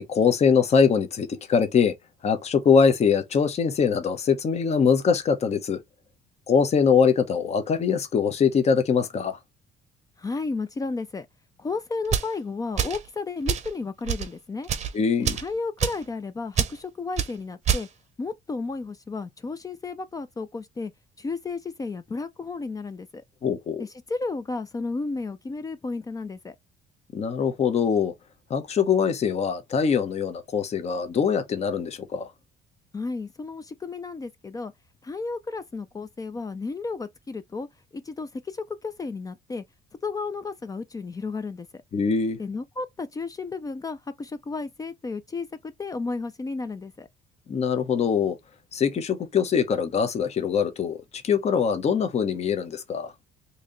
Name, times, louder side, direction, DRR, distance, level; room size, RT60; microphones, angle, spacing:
voice 1, 0.0-1.9 2.2-5.8 6.5-9.4 14.9-15.4 23.4-23.8 27.1-28.1 28.5-32.3 41.9-42.4 47.5-48.3 48.7-51.0 51.2-53.1, left 6 dB, 40° left, 0.9 m, -23 dB
voice 2, 10.2-11.3 11.6-14.7 15.3-17.9 18.2-20.9 21.2-23.2 23.8-26.6 32.9-34.7 35.0-37.7 37.9-39.6 40.0-41.8 42.4-47.1, left 3 dB, 20° left, 0.4 m, -33 dB
sound 1, 12.0-12.3 12.8-13.0 13.5-13.7 14.0-14.3 14.6-14.9 15.2-15.5 15.8-16.0 16.5-16.7 17.2-17.3 17.6-17.9, right 8 dB, 40° right, 0.7 m, -26 dB
3.1 x 2.8 x 3.8 m
cardioid pair, 110°, 17 cm